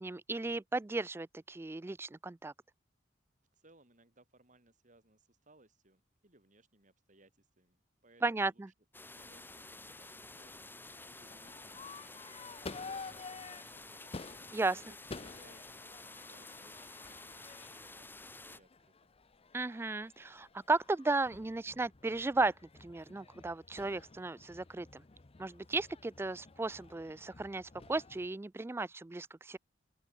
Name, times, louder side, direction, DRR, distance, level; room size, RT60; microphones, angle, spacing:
voice 1, 0.0-2.5 8.2-8.7 14.5-14.8 19.5-22.5 22.8-25.0 25.4-29.6, right 3 dB, 15° right, 0.3 m, -35 dB
voice 2, 3.5-8.6 9.0-19.1, right 2 dB, 45° right, 5.5 m, -66 dB
sound 1, 8.9-18.6, left 2 dB, 10° left, 2.8 m, -51 dB
Crowd / Fireworks, 9.3-28.3, left 4 dB, 30° left, 0.7 m, -51 dB
open air
head